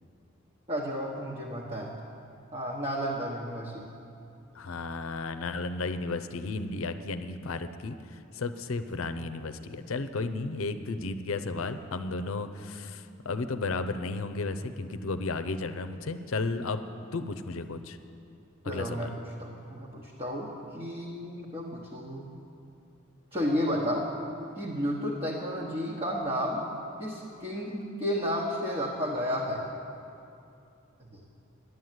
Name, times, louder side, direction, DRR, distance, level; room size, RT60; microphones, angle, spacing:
voice 1, 0.7-2.0 2.5-3.8 18.6-19.1 19.4-22.3 23.3-24.1 24.6-26.7 27.0-29.6 31.0-31.2, equal, 25° right, -4 dB, 1.1 m, -32 dB
voice 2, 4.5-16.8 17.1-18.0 18.6-19.1, left 3 dB, 80° left, 10 dB, 0.6 m, -33 dB
11.0 x 7.9 x 9.2 m, 2.6 s
head